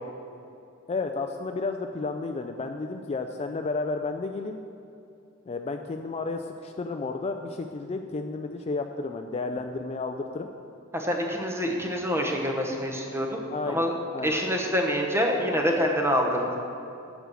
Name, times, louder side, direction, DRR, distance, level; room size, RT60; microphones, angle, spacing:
voice 1, 0.9-4.6 5.5-10.5 13.5-13.9 14.1-14.4, left 3 dB, 30° left, 5 dB, 0.4 m, -32 dB
voice 2, 10.9-13.9 14.2-16.5, equal, 10° right, 1 dB, 1.1 m, -26 dB
8.2 x 6.2 x 7.6 m, 2.6 s
head